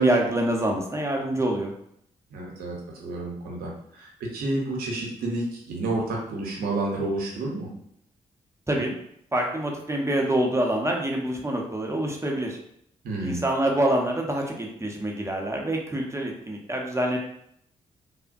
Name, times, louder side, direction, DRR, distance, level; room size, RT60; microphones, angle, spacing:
voice 1, 0.0-1.7 8.7-8.9 9.3-12.6 13.2-17.2, right 1 dB, 20° right, 0 dB, 0.7 m, -26 dB
voice 2, 2.3-7.7 13.0-13.4, right 2 dB, 80° right, -1 dB, 0.8 m, -30 dB
3.4 x 2.1 x 2.6 m, 0.71 s
supercardioid pair, 50°, 15 cm